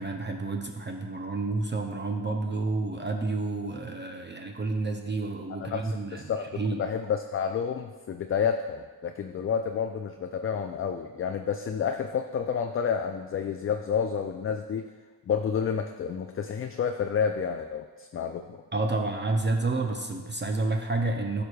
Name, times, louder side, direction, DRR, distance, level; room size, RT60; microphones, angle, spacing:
voice 1, 0.0-6.2 6.6-6.8 18.7-21.4, right 3 dB, 25° right, 3 dB, 0.6 m, -29 dB
voice 2, 5.6-14.9 15.3-18.6, left 7 dB, 35° left, 5 dB, 0.4 m, -30 dB
11.0 x 4.9 x 2.3 m, 1.3 s
supercardioid pair, 50°, 44 cm